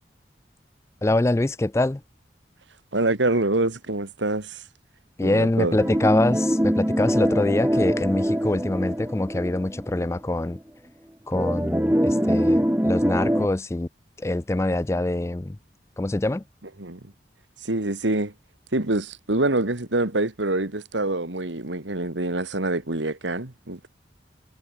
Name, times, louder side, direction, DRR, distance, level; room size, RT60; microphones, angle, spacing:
voice 1, 1.0-2.0 5.2-10.6 11.3-13.9 14.2-15.6 16.0-16.4, left 2 dB, 15° left, 0.3 m, -24 dB
voice 2, 2.9-4.6 5.2-5.9 16.8-17.0 17.6-18.3 18.7-23.9, right 2 dB, 90° right, 2.1 m, -25 dB
sound 1, 5.8-10.1 10.5-10.6 11.3-13.5, equal, 10° right, 1.5 m, -23 dB
head